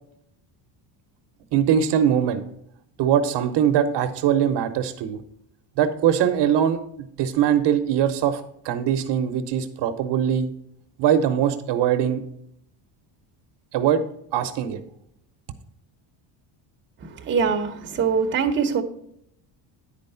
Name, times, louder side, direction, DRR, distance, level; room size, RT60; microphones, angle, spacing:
voice 1, 1.5-2.4 3.0-5.2 5.8-6.8 7.2-10.5 11.0-12.2 13.7-14.0 14.3-14.8, right 9 dB, 60° right, 9 dB, 0.8 m, -21 dB
voice 2, 17.0-18.8, right 6 dB, 25° right, 4 dB, 0.8 m, -23 dB
10.0 x 4.5 x 5.4 m, 0.72 s
cardioid pair, 155°, 48 cm